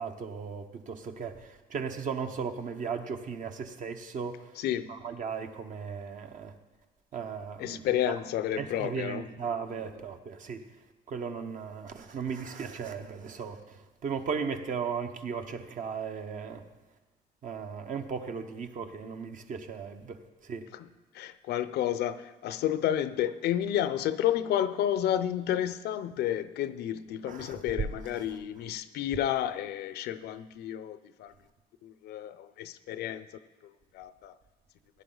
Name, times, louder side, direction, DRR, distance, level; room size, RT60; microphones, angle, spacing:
voice 1, 0.0-4.6 4.9-6.5 7.1-8.1 8.6-10.6 11.1-16.6 17.4-20.7 27.3-27.6, right 6 dB, 50° right, 6 dB, 1.0 m, -36 dB
voice 2, 4.6-4.9 7.6-9.3 9.7-9.8 20.7-20.9 21.1-31.3 31.8-33.3 33.9-34.3, left 11 dB, 75° left, 13 dB, 0.6 m, -31 dB
16.5 x 10.0 x 3.9 m, 1.2 s
cardioid pair, 110°, 17 cm